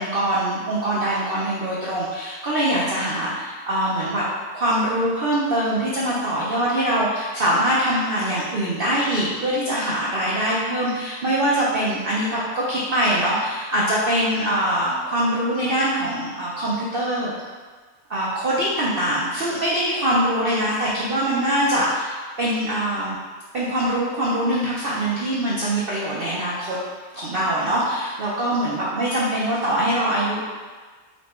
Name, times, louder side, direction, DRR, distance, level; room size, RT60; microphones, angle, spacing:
voice 1, 0.0-4.2 4.5-17.3 18.1-23.2 23.5-26.8 27.1-30.4, right 1 dB, 60° right, -7 dB, 0.6 m, -23 dB
4.4 x 2.2 x 4.1 m, 1.4 s
omnidirectional pair, 1.7 m